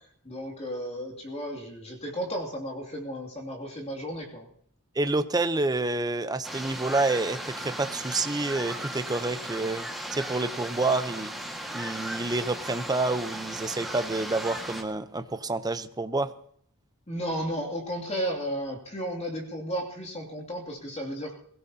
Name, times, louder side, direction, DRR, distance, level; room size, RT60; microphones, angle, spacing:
voice 1, 0.0-4.5 17.1-21.3, equal, 30° left, 0 dB, 2.6 m, -34 dB
voice 2, 4.9-11.3 11.7-16.3, right 2 dB, 20° right, 10 dB, 0.7 m, -28 dB
sound 1, 6.4-14.8, right 1 dB, ahead, 1.7 m, -37 dB
22.5 x 17.0 x 2.9 m, 0.62 s
head